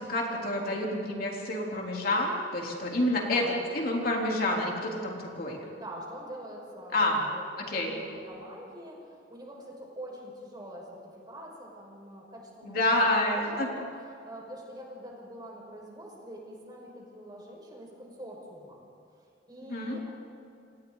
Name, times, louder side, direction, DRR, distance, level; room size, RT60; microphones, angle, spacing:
voice 1, 0.1-3.4 3.7-5.6 6.9-7.2 7.7-7.9 12.6-13.7 19.7-20.0, left 1 dB, 55° left, -1 dB, 3.5 m, -28 dB
voice 2, 3.2-3.5 5.7-13.7 14.2-18.8 19.5-20.1, equal, 25° right, -2 dB, 5.4 m, -44 dB
28.5 x 25.5 x 4.0 m, 2.6 s
head